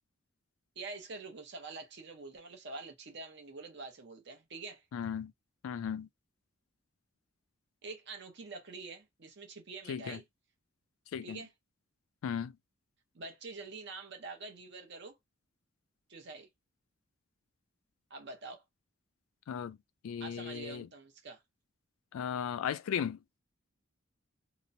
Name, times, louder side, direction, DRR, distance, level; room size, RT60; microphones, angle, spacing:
voice 1, 0.8-4.8 7.8-10.2 11.2-11.5 13.1-15.2 16.1-16.5 18.1-18.6 20.2-21.4, right 3 dB, 55° right, 0.7 m, -46 dB
voice 2, 4.9-5.3 5.6-6.1 9.9-10.2 11.1-11.4 12.2-12.5 19.5-19.8 20.0-20.9 22.1-23.2, left 8 dB, 80° left, 0.3 m, -36 dB
2.9 x 2.0 x 2.6 m
head